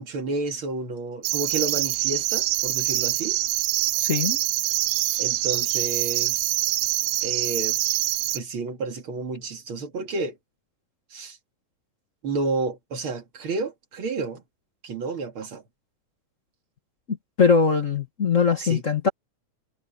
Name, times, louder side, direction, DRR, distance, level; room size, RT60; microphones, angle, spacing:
voice 1, 0.0-3.4 5.2-6.4 7.2-7.8 8.3-10.4 11.1-11.4 12.2-14.4 14.8-15.6 18.6-18.8, right 3 dB, 45° right, 2.6 m, -30 dB
sound 1, 1.2-8.4, right 17 dB, 80° right, 1.6 m, -25 dB
voice 2, 4.0-4.4 17.4-19.1, left 5 dB, 45° left, 1.0 m, -21 dB
omnidirectional pair, 3.7 m